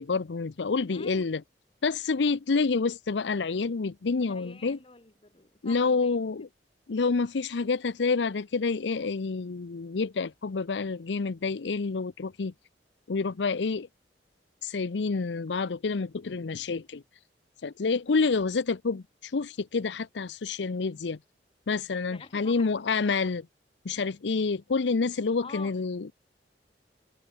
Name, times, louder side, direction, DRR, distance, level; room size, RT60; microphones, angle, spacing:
voice 1, 0.0-1.4 1.8-4.8 5.6-6.5 6.9-12.5 13.1-13.9 14.6-17.0 17.6-21.2 21.7-23.4 23.8-26.1, left 4 dB, 85° left, 0.6 m, -28 dB
voice 2, 0.9-1.3 4.2-6.2 22.1-22.7 23.0-23.2 25.4-25.8, left 3 dB, 30° left, 2.1 m, -47 dB
head